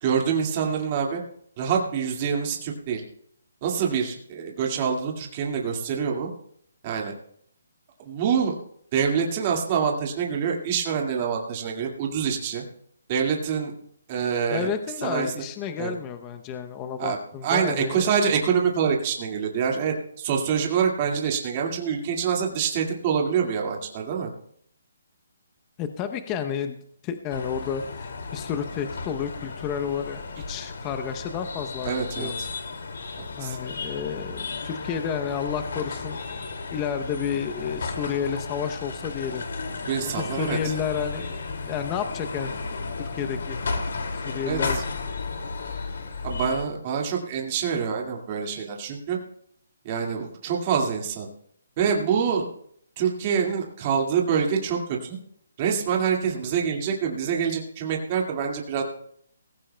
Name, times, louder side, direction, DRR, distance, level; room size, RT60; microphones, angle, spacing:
voice 1, 0.0-1.2 1.6-3.0 3.6-6.3 6.8-7.1 8.0-8.5 8.9-12.6 13.1-13.7 14.1-14.7 15.0-15.3 15.8-15.9 17.0-17.2 17.4-24.3 31.8-32.5 33.4-33.6 39.9-40.7 44.5-44.8 46.2-49.2 49.8-51.3 51.8-52.5 53.0-55.2 55.6-58.8, right 7 dB, 30° right, 0 dB, 2.0 m, -26 dB
voice 2, 14.5-18.3 25.8-26.8 27.0-30.2 30.5-32.4 33.4-36.2 36.7-39.4 40.1-41.4 41.7-42.5 43.0-43.6 44.1-44.8, left 7 dB, 20° left, 7 dB, 0.7 m, -31 dB
sound 1, 27.3-46.6, left 4 dB, 65° left, 2.4 m, -34 dB
19.5 x 15.5 x 2.3 m, 0.66 s
hypercardioid pair, 160°, 0 cm